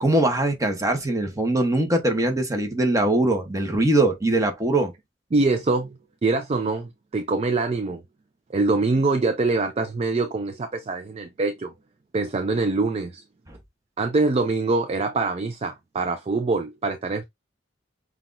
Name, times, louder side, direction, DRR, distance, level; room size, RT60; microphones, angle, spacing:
voice 1, 0.0-4.9, right 1 dB, 20° right, 0.9 m, -22 dB
voice 2, 5.3-8.0 8.5-11.7 12.1-13.2 14.0-17.2, right 3 dB, 35° right, 0.4 m, -24 dB
5.8 x 2.3 x 2.5 m
head